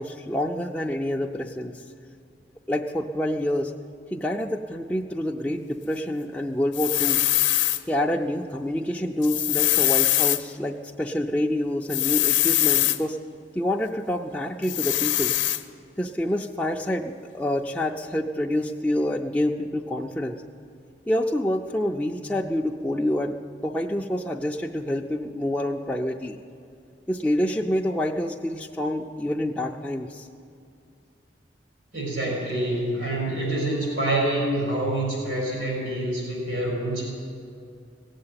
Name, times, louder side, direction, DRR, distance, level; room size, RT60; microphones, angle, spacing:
voice 1, 0.0-1.8 2.7-3.7 4.1-7.3 7.9-13.2 13.5-15.3 16.0-20.4 21.1-26.4 27.1-30.3, left 1 dB, 5° left, -1 dB, 0.4 m, -27 dB
sound 1, 6.7-7.8 9.2-10.4 11.9-13.0 14.6-15.6, left 14 dB, 80° left, 0.6 m, -22 dB
voice 2, 31.9-37.0, right 1 dB, 85° right, -3 dB, 4.2 m, -26 dB
17.0 x 7.6 x 8.8 m, 2.4 s
head